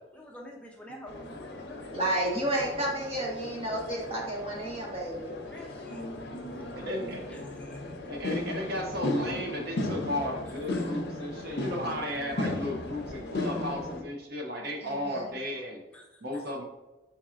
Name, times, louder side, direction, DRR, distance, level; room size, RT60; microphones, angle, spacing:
voice 1, 0.1-1.9 5.4-6.1 6.5-6.6 7.3-7.9 10.7-10.9 15.9-16.2, left 1 dB, 5° left, -2 dB, 0.5 m, -48 dB
sound 1, 1.1-14.0, left 2 dB, 60° left, 0.6 m, -36 dB
voice 2, 1.9-5.3 14.8-15.2, right 1 dB, 30° right, -2 dB, 1.1 m, -31 dB
voice 3, 6.7-7.2 8.1-15.8 16.2-16.6, left 1 dB, 60° right, 1 dB, 0.7 m, -34 dB
4.6 x 4.3 x 2.4 m, 1.1 s
head